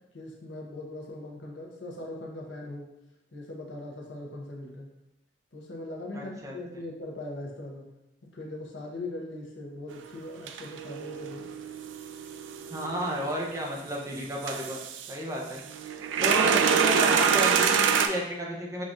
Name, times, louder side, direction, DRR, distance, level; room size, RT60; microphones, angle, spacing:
voice 1, 0.1-2.9 3.3-4.9 5.5-7.8 8.3-11.5, left 2 dB, 80° left, -1 dB, 0.8 m, -40 dB
voice 2, 6.1-6.5 12.7-15.6 16.2-18.8, right 1 dB, 20° right, -2 dB, 0.5 m, -32 dB
sound 1, 9.9-10.0 10.5-13.8 14.4-15.1 15.6-18.1, right 7 dB, 90° right, 0.3 m, -26 dB
5.1 x 2.4 x 2.6 m, 0.89 s
head